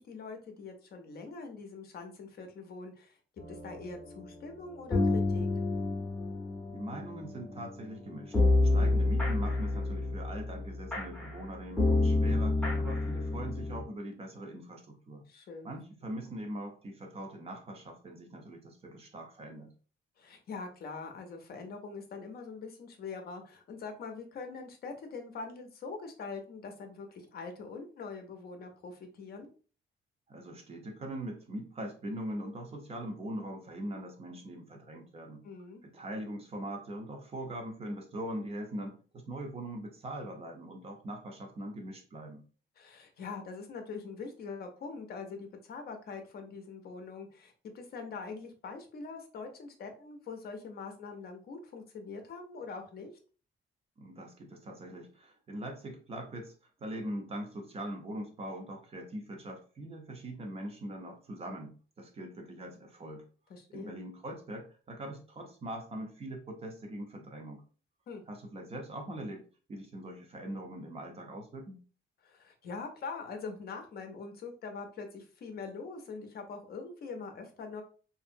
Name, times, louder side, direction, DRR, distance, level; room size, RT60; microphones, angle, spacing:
voice 1, 0.0-3.2 3.5-5.5 8.7-9.1 15.3-15.7 20.2-29.5 35.4-35.8 42.8-53.1 63.5-64.0 68.1-68.2 72.2-77.8, left 4 dB, 50° left, 5 dB, 0.6 m, -43 dB
sound 1, 3.4-13.8, left 2 dB, 5° left, 0.7 m, -29 dB
voice 2, 6.7-8.3 8.7-15.2 15.6-19.7 30.3-35.4 35.8-42.4 54.0-56.5 56.8-63.3 63.7-67.6 68.3-69.4 69.7-71.8, right 1 dB, 30° right, 2 dB, 0.6 m, -41 dB
2.9 x 2.6 x 2.5 m, 0.38 s
cardioid pair, 165°, 20 cm